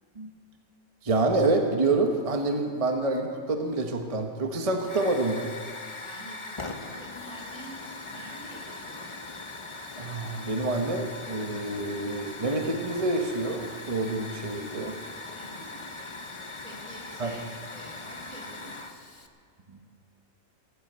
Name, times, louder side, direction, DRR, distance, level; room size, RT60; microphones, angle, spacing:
voice 1, 1.0-5.5 10.0-14.9 17.2-17.3 19.7-19.8, right 2 dB, 25° right, 4 dB, 1.1 m, -27 dB
Hiss / Fire, 4.8-19.3, left 3 dB, 25° left, 0.7 m, -40 dB
voice 2, 6.0-7.8 8.1-9.1 15.3-15.9 16.6-18.9, right 1 dB, 80° right, -1 dB, 4.1 m, -47 dB
17.5 x 8.5 x 8.1 m, 2.2 s
omnidirectional pair, 1.5 m